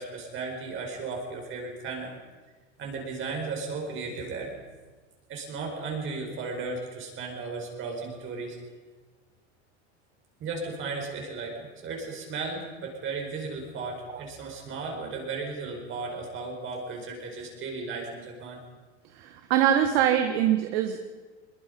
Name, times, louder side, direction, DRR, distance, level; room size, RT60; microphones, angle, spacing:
voice 1, 0.0-2.2 2.8-4.5 5.3-8.6 10.4-18.6, right 4 dB, 35° right, 1 dB, 5.0 m, -35 dB
voice 2, 19.1-21.1, right 10 dB, 60° right, 6 dB, 1.6 m, -23 dB
22.0 x 21.5 x 5.4 m, 1.3 s
supercardioid pair, 140°, 35 cm